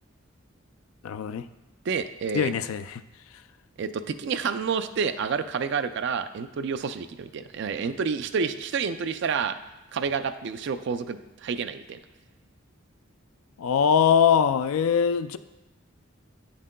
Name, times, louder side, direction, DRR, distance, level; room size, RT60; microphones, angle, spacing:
voice 1, 1.0-1.5 2.3-3.0 13.6-15.4, left 7 dB, 85° left, 12 dB, 0.3 m, -22 dB
voice 2, 1.9-2.5 3.8-9.6 9.9-12.0, right 6 dB, 55° right, 11 dB, 0.3 m, -29 dB
9.2 x 7.3 x 2.2 m, 1.1 s
head